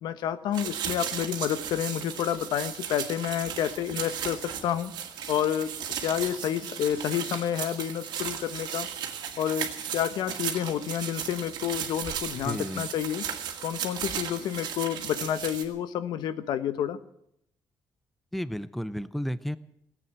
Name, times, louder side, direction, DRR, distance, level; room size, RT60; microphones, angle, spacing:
voice 1, 0.0-4.9 5.3-5.7 6.0-8.9 9.4-13.3 13.6-17.0, left 10 dB, 90° left, 12 dB, 1.0 m, -29 dB
sound 1, 0.5-15.6, right 9 dB, 90° right, 2.1 m, -36 dB
voice 2, 12.4-12.8 18.3-19.6, equal, ahead, 15 dB, 0.5 m, -32 dB
18.0 x 8.7 x 9.1 m, 0.76 s
cardioid pair, 150°, 7 cm